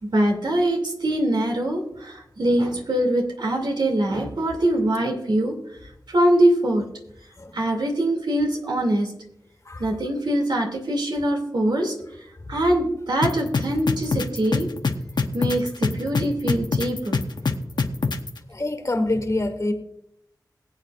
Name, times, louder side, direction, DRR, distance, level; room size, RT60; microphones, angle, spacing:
voice 1, 0.0-5.5 6.1-6.8 7.5-9.1 9.8-12.0 12.5-14.7 15.3-17.2, right 1 dB, 85° right, 2.4 m, -23 dB
sound 1, 13.2-18.3, left 4 dB, 75° left, 0.8 m, -23 dB
voice 2, 18.5-19.7, left 2 dB, 45° left, 1.6 m, -26 dB
21.5 x 8.2 x 2.5 m
wide cardioid pair, 70°, 8 cm